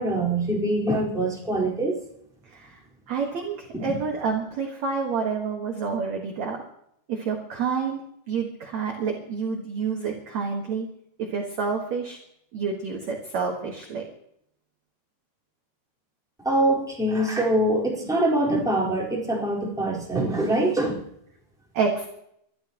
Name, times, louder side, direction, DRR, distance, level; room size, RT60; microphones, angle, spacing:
voice 1, 0.0-2.0 3.7-4.0 16.4-21.0, right 1 dB, ahead, -5 dB, 3.7 m, -24 dB
voice 2, 2.5-2.8 3.1-6.6 7.1-8.0 8.3-10.9 11.2-12.2 12.5-14.0 21.7-22.1, right 5 dB, 55° right, 1 dB, 2.0 m, -28 dB
23.0 x 13.5 x 3.0 m, 0.71 s
omnidirectional pair, 5.4 m